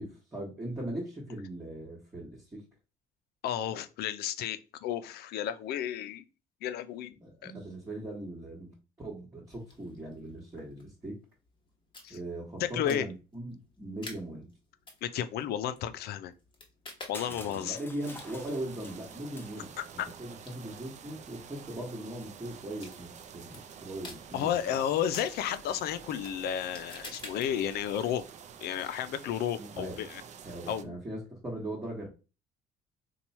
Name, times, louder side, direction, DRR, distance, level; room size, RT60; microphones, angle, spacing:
voice 1, 0.0-2.6 7.2-11.2 12.1-14.5 17.3-24.8 29.5-30.0 30.4-32.1, right 1 dB, 15° right, 1.3 m, -40 dB
voice 2, 3.4-6.2 6.6-7.1 7.4-7.5 12.0-12.2 12.6-13.1 15.0-16.3 17.1-17.8 19.8-20.1 24.3-28.2 28.6-30.2 30.7-31.0, left 10 dB, 70° left, 0.4 m, -32 dB
sound 1, 9.5-28.2, left 2 dB, 30° left, 1.1 m, -53 dB
Crushing, 17.1-20.1, left 2 dB, 10° left, 0.6 m, -49 dB
sound 2, 18.0-30.8, right 7 dB, 45° right, 0.5 m, -49 dB
2.9 x 2.3 x 4.1 m
cardioid pair, 110°, 17 cm